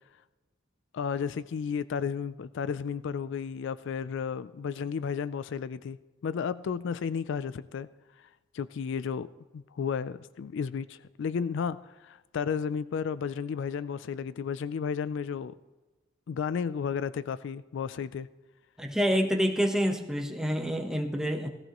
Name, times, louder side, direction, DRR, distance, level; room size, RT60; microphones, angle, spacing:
voice 1, 0.9-6.0 6.2-7.9 8.5-9.3 9.5-15.5 16.3-18.3, left 6 dB, 65° left, 16 dB, 0.3 m, -33 dB
voice 2, 18.8-21.5, equal, 5° right, 3 dB, 1.0 m, -27 dB
16.5 x 15.0 x 3.0 m, 1.2 s
head